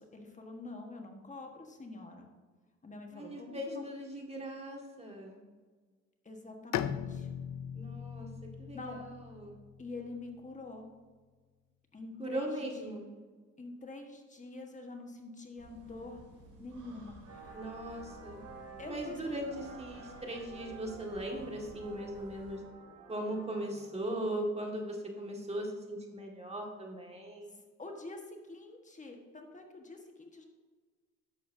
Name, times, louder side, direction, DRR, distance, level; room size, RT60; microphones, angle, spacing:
voice 1, 0.0-2.4 2.8-3.8 6.2-7.3 8.7-9.0 9.8-10.9 11.9-12.9 13.6-16.2 16.6-17.5 18.8-19.4 27.8-30.4, left 2 dB, 25° left, 2 dB, 1.3 m, -46 dB
voice 2, 3.1-5.4 7.7-8.3 8.6-9.6 12.2-13.1 17.5-18.4 18.8-22.6 23.1-27.6, right 1 dB, 20° right, 1 dB, 1.8 m, -39 dB
Bowed string instrument, 6.7-10.3, left 9 dB, 65° left, 0.5 m, -39 dB
sound 1, 15.6-22.6, right 1 dB, 90° right, 2.2 m, -55 dB
sound 2, 17.2-24.0, right 4 dB, 55° right, 1.6 m, -51 dB
11.0 x 6.7 x 2.7 m, 1.4 s
cardioid pair, 90°, 30 cm